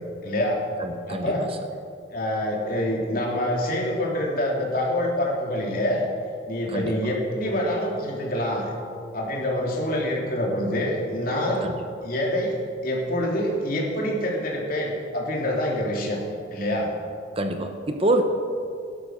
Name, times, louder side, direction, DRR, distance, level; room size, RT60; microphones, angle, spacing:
voice 1, 0.0-0.6 1.1-1.5 2.1-6.0 6.5-8.7 9.1-11.6 12.0-12.6 12.8-16.2 16.5-16.9, left 1 dB, 45° left, -2 dB, 3.2 m, -26 dB
voice 2, 0.8-1.3 6.7-7.0 11.6-11.7 17.4-18.2, right 2 dB, 30° right, 6 dB, 0.9 m, -25 dB
17.5 x 11.5 x 6.5 m, 2.5 s
head